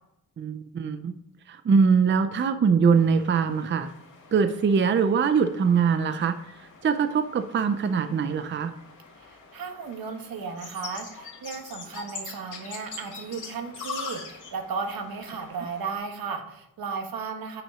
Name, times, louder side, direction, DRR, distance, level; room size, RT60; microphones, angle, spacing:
voice 1, 0.4-1.1 1.5-3.9 4.3-6.4 6.8-8.7, right 6 dB, 35° right, 9 dB, 0.5 m, -22 dB
sound 1, 2.9-15.9, left 4 dB, 60° left, 2.2 m, -43 dB
voice 2, 9.3-17.6, right 5 dB, 85° right, 5 dB, 1.4 m, -35 dB
8.3 x 6.0 x 4.9 m, 0.81 s
wide cardioid pair, 170°, 34 cm